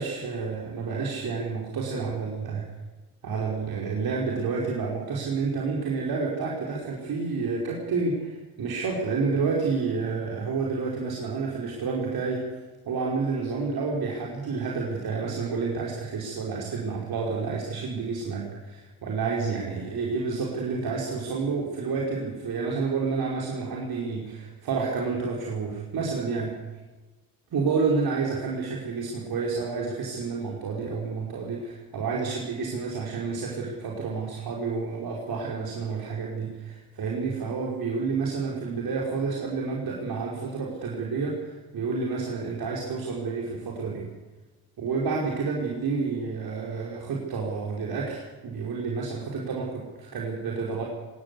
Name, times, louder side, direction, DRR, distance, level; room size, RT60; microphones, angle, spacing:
voice 1, 0.0-2.7 3.2-12.6 12.8-26.6 27.5-44.1 44.8-50.8, right 4 dB, 55° right, -2 dB, 5.1 m, -29 dB
19.0 x 19.0 x 8.4 m, 1.2 s
hypercardioid pair, 60°, 44 cm